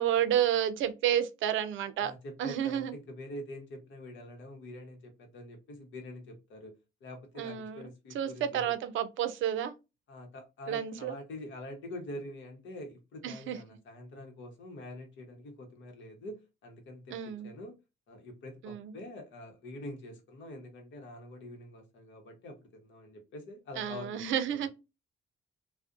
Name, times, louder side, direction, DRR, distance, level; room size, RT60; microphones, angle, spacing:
voice 1, 0.0-2.1 2.4-2.9 7.4-7.8 8.1-9.7 10.7-11.2 13.2-13.6 17.1-17.5 18.6-18.9 23.8-24.7, right 10 dB, 75° right, 0.5 m, -30 dB
voice 2, 2.0-6.7 7.0-8.7 10.1-17.8 18.1-24.7, left 1 dB, 75° left, 0.9 m, -45 dB
2.5 x 2.1 x 2.4 m
cardioid pair, 90°, 20 cm